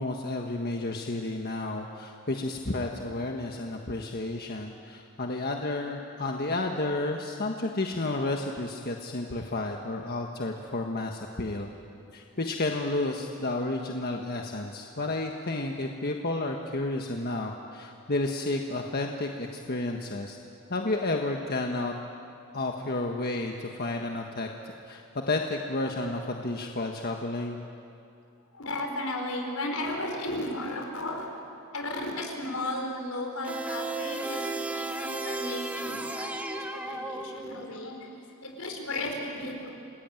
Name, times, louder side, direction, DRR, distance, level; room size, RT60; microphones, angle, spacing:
voice 1, 0.0-11.7 12.1-20.4 20.7-21.9 22.5-24.5 24.9-27.6, left 2 dB, 45° left, 2 dB, 1.5 m, -31 dB
voice 2, 28.5-31.4 31.7-39.7, left 1 dB, 80° left, 2 dB, 5.0 m, -35 dB
sound 1, 33.4-37.8, right 2 dB, 5° right, 1.3 m, -34 dB
29.0 x 20.0 x 9.2 m, 2.6 s
head